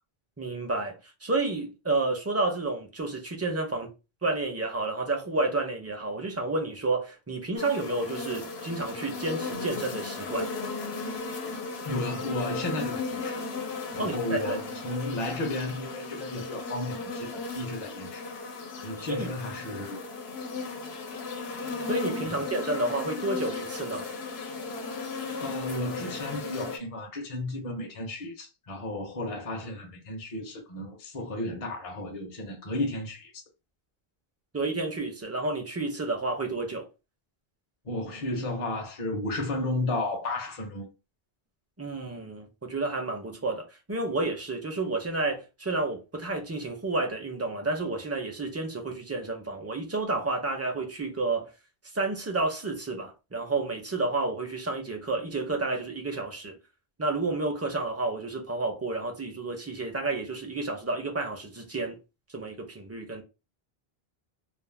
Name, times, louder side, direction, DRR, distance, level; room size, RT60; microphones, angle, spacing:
voice 1, 0.4-3.9 4.2-10.5 14.0-14.6 19.1-19.3 19.7-19.8 21.8-24.1 34.5-36.9 41.8-51.5 51.9-56.5 57.0-62.0 62.3-63.2, right 2 dB, 20° right, 0.4 m, -30 dB
sound 1, 7.6-26.8, left 4 dB, 80° left, 1.0 m, -36 dB
voice 2, 11.8-13.4 13.9-18.3 18.8-20.0 22.2-22.3 25.4-33.3 37.8-40.9, left 2 dB, 40° left, 0.6 m, -33 dB
2.5 x 2.0 x 3.2 m
omnidirectional pair, 1.0 m